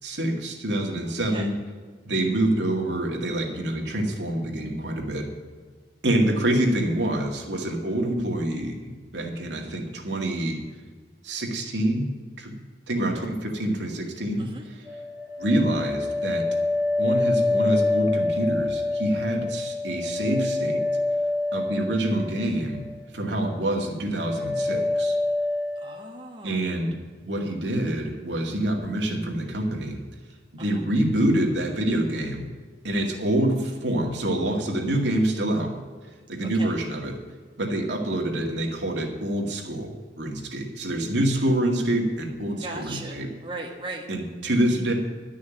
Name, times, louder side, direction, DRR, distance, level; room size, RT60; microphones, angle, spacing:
voice 1, 0.0-1.5 2.0-5.3 6.0-10.6 11.2-12.5 12.9-14.5 15.4-16.5 17.0-20.8 21.5-22.8 23.1-25.2 26.4-26.9 27.2-30.0 30.5-32.5 32.8-35.7 36.3-37.1 37.6-43.3 44.1-44.9, right 1 dB, 75° right, 1 dB, 2.2 m, -26 dB
sound 1, 14.9-23.0 23.3-23.8 24.2-25.9, left 2 dB, 15° left, 2.7 m, -26 dB
voice 2, 25.8-26.7 30.6-30.8 36.4-36.8 42.6-44.1, right 2 dB, 30° right, 0 dB, 1.2 m, -38 dB
11.5 x 6.3 x 9.0 m, 1.5 s
head